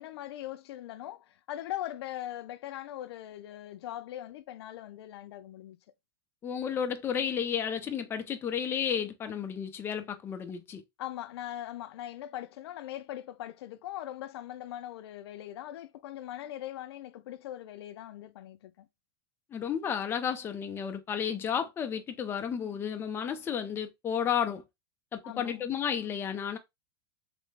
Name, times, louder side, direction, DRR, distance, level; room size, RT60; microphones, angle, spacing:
voice 1, 0.0-5.8 11.0-18.9 25.2-25.7, left 13 dB, 90° left, 0.4 m, -41 dB
voice 2, 6.4-10.8 19.5-24.6 25.1-26.6, left 8 dB, 20° left, 0.4 m, -32 dB
3.2 x 2.0 x 3.2 m
supercardioid pair, 150°, 13 cm